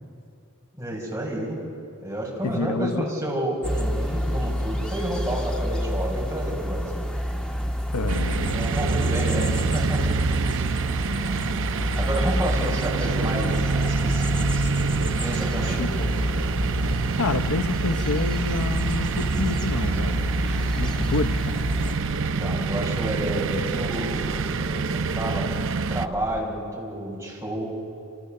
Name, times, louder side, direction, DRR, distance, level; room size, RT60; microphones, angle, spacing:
voice 1, 0.8-1.6 2.0-7.1 8.5-10.2 12.0-14.9 15.2-15.9 22.3-25.5 25.9-27.7, right 1 dB, 10° right, -3 dB, 6.0 m, -30 dB
voice 2, 2.4-3.1 7.9-8.7 11.4-12.0 15.7-16.1 17.2-20.3 20.8-21.7, left 3 dB, 90° left, 10 dB, 0.8 m, -29 dB
sound 1, 3.6-22.0, equal, 5° left, 1.4 m, -28 dB
sound 2, 8.1-26.1, right 4 dB, 60° right, 0.6 m, -27 dB
sound 3, 13.4-26.4, equal, 25° left, 3.9 m, -40 dB
28.5 x 26.5 x 6.6 m, 2.5 s
head